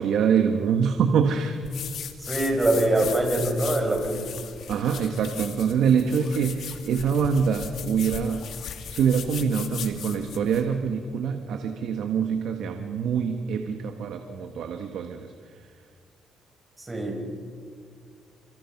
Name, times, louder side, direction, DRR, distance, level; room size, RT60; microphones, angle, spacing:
voice 1, 0.0-1.6 4.7-8.4 8.9-15.3, right 6 dB, 75° right, 5 dB, 1.6 m, -25 dB
sound 1, 1.6-10.7, left 8 dB, 70° left, 2.6 m, -38 dB
voice 2, 2.2-4.4 16.8-17.2, right 1 dB, 20° right, 3 dB, 6.5 m, -24 dB
28.5 x 26.5 x 6.0 m, 2.1 s
cardioid pair, 90°, 0 cm